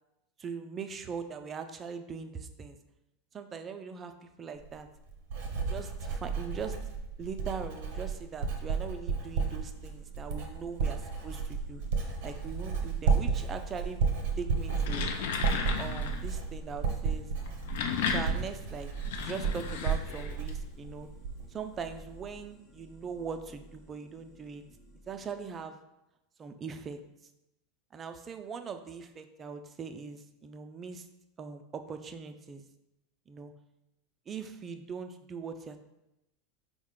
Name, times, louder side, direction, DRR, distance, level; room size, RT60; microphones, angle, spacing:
voice 1, 0.4-2.8 3.3-4.9 5.6-6.8 7.2-11.8 12.2-14.0 14.4-15.1 15.8-17.3 18.1-21.1 21.5-24.6 25.1-25.8 26.4-27.0 27.9-31.1 31.4-32.6 33.3-33.5 34.3-35.8, right 6 dB, 30° right, 7 dB, 0.4 m, -41 dB
Writing, 4.6-21.6 21.9-22.4, right 5 dB, 65° right, 0.7 m, -33 dB
sound 1, 9.2-25.7, right 1 dB, 35° left, 1.0 m, -53 dB
sound 2, 14.6-16.3 17.4-20.5, left 6 dB, 70° left, 0.4 m, -34 dB
4.3 x 2.1 x 3.7 m, 0.90 s
hypercardioid pair, 95°, 0 cm